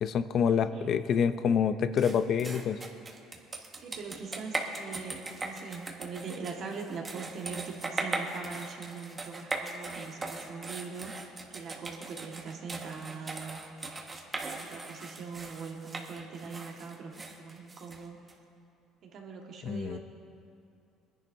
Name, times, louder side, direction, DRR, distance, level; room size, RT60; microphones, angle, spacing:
voice 1, 0.0-2.8 19.6-20.0, left 7 dB, 55° left, 12 dB, 0.6 m, -27 dB
voice 2, 0.7-1.0 3.8-11.1 11.5-13.7 14.1-18.2 19.0-20.0, right 5 dB, 60° right, 1 dB, 1.6 m, -42 dB
sound 1, 2.0-18.3, right 3 dB, 30° right, 1.5 m, -39 dB
23.5 x 10.5 x 2.7 m, 2.6 s
supercardioid pair, 90°, 0 cm